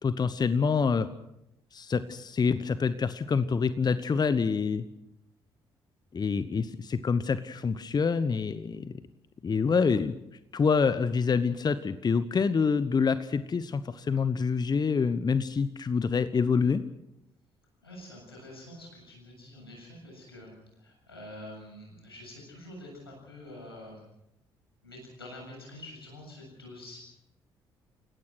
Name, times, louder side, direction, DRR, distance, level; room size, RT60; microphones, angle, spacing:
voice 1, 0.0-1.1 1.7-4.8 6.1-8.9 9.4-10.1 10.5-16.8, left 5 dB, 35° left, 13 dB, 1.1 m, -26 dB
voice 2, 17.8-24.1 24.8-27.0, left 1 dB, 90° left, -1 dB, 7.5 m, -46 dB
29.5 x 16.0 x 6.3 m, 0.83 s
figure-of-eight pair, 45°, 12 cm